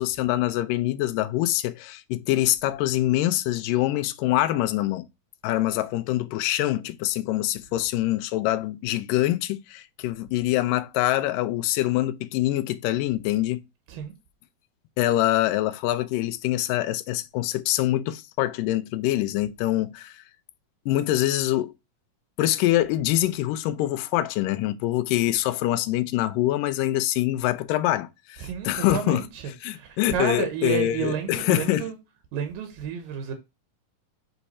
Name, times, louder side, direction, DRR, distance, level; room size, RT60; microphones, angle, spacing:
voice 1, 0.0-5.1 5.4-13.6 15.0-20.2 20.9-21.7 22.4-29.2 29.6-31.9, left 15 dB, 85° left, 2.3 m, -25 dB
voice 2, 28.4-32.0 32.3-33.3, right 8 dB, 90° right, 2.9 m, -31 dB
8.3 x 3.3 x 4.1 m
omnidirectional pair, 3.8 m